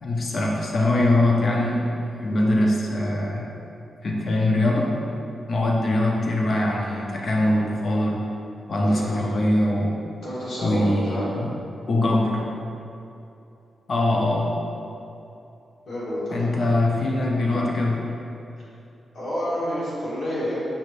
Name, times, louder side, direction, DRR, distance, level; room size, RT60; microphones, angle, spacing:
voice 1, 0.0-1.9 2.2-3.5 4.0-5.0 5.5-8.2 8.7-9.9 10.6-11.5 11.9-12.4 13.9-14.5 16.3-18.0, left 1 dB, 50° left, -2 dB, 0.6 m, -22 dB
voice 2, 8.8-9.2 10.2-11.3 15.9-16.5 18.6-18.7 19.1-20.6, equal, 75° left, -9 dB, 1.4 m, -29 dB
5.2 x 2.5 x 3.1 m, 2.7 s
wide cardioid pair, 125°, 0 cm